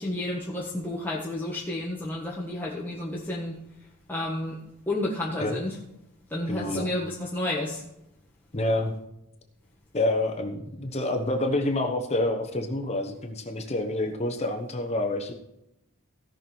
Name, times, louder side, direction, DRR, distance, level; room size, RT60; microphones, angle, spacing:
voice 1, 0.0-3.6 4.1-5.8 6.3-7.8, left 1 dB, 10° left, -6 dB, 1.5 m, -31 dB
voice 2, 6.5-6.9 8.5-8.9 9.9-15.3, left 1 dB, 30° left, 4 dB, 1.0 m, -28 dB
17.0 x 6.1 x 4.5 m, 0.83 s
head